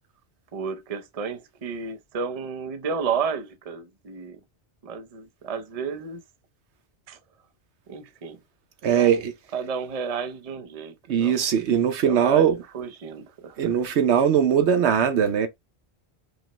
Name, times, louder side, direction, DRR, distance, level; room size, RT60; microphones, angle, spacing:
voice 1, 0.5-4.4 4.8-6.2 7.1-7.2 7.9-8.4 8.9-9.2 9.5-11.4 12.0-12.5 12.7-13.7, right 6 dB, 40° right, 0.6 m, -32 dB
voice 2, 8.8-9.3 11.1-12.6 13.6-15.5, right 8 dB, 75° right, 1.0 m, -20 dB
5.2 x 2.0 x 2.9 m
omnidirectional pair, 1.2 m